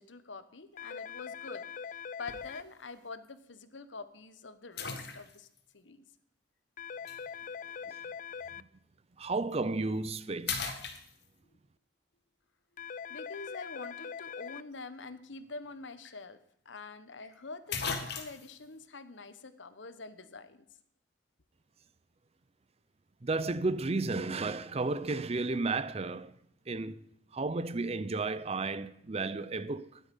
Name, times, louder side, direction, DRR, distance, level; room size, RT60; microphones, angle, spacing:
voice 1, 0.0-1.6 2.2-5.5 5.7-6.0 13.1-16.4 16.6-20.6, left 3 dB, 80° left, 1.2 m, -46 dB
sound 1, 0.8-2.6 6.8-8.6 12.8-14.6, left 6 dB, 45° left, 0.4 m, -42 dB
sound 2, 2.3-2.6 3.2-3.3 4.8-5.6 7.1-7.2 9.3-9.5 10.0-10.1 10.5-11.5 15.7-15.8 16.0-16.1 17.2-17.3 17.7-18.6, left 6 dB, 60° left, 2.0 m, -37 dB
voice 2, 9.2-10.8 23.2-26.3 26.7-27.0 27.3-30.0, right 3 dB, 35° right, 0.6 m, -33 dB
14.0 x 11.0 x 5.4 m
head